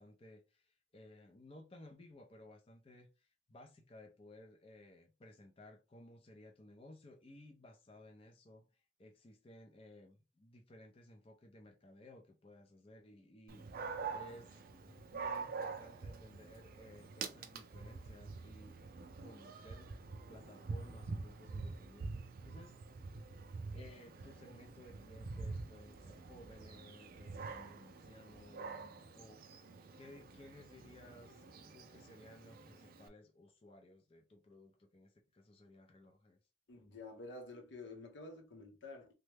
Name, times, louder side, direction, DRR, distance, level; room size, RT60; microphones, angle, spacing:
voice 1, 0.0-13.8 14.1-14.6 15.1-18.9 19.2-19.9 20.3-22.8 23.7-29.7 29.9-31.4 31.7-36.4, left 1 dB, 30° left, 0.5 m, -58 dB
Dog, 13.5-33.1, right 4 dB, 50° right, 0.4 m, -46 dB
voice 2, 36.7-39.1, left 2 dB, 75° left, 0.8 m, -50 dB
3.1 x 2.2 x 3.3 m
head